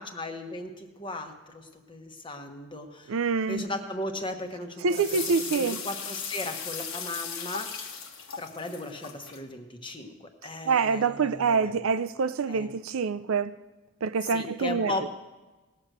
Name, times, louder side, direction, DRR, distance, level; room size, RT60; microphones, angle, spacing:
voice 1, 0.0-3.2 3.5-8.1 8.4-11.7 12.5-12.7 14.3-15.1, left 1 dB, 25° left, 1.1 m, -37 dB
voice 2, 3.1-3.7 4.8-5.8 10.7-13.5 14.0-15.1, right 5 dB, 80° right, 0.5 m, -26 dB
sound 1, 4.9-9.4, left 6 dB, 75° left, 1.4 m, -37 dB
18.5 x 6.2 x 6.6 m
head